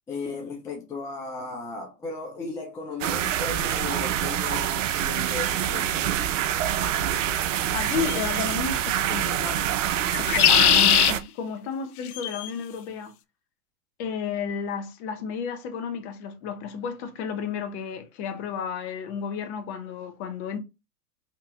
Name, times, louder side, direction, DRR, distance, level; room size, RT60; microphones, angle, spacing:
voice 1, 0.1-6.1, left 3 dB, 5° left, 0.4 m, -36 dB
sound 1, 3.0-11.2, right 10 dB, 55° right, 0.6 m, -26 dB
sound 2, 5.4-5.5 8.0-8.4 10.1-11.1 12.1-12.5, left 13 dB, 65° left, 0.5 m, -20 dB
voice 2, 7.7-9.6 10.2-13.1 14.0-20.6, left 6 dB, 45° left, 1.0 m, -32 dB
4.5 x 2.9 x 2.4 m
figure-of-eight pair, 100°, 47 cm